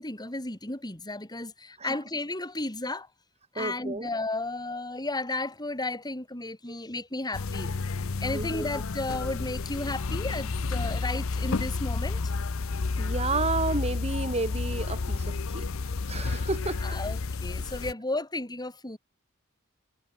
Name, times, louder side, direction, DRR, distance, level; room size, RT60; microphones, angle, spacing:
voice 1, 0.0-3.1 3.5-7.7 8.2-12.2 16.8-19.0, left 2 dB, 20° left, 4.1 m, -33 dB
voice 2, 3.6-4.1 6.7-6.8 8.3-8.7 13.0-15.7 16.1-17.0 17.6-17.7, right 3 dB, 30° right, 4.1 m, -31 dB
sound 1, 7.3-17.9, left 3 dB, 75° left, 0.7 m, -31 dB
head